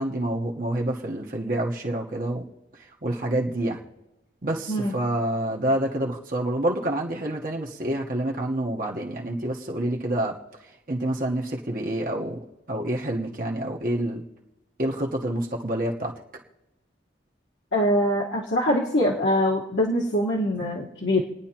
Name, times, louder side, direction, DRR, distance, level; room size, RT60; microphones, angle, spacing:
voice 1, 0.0-2.5 2.8-3.8 4.4-10.3 10.9-12.4 12.7-14.2 14.8-16.1, right 1 dB, 45° right, -1 dB, 1.1 m, -27 dB
voice 2, 17.7-21.2, equal, 65° left, -4 dB, 1.5 m, -23 dB
28.5 x 9.8 x 3.0 m, 1.0 s
head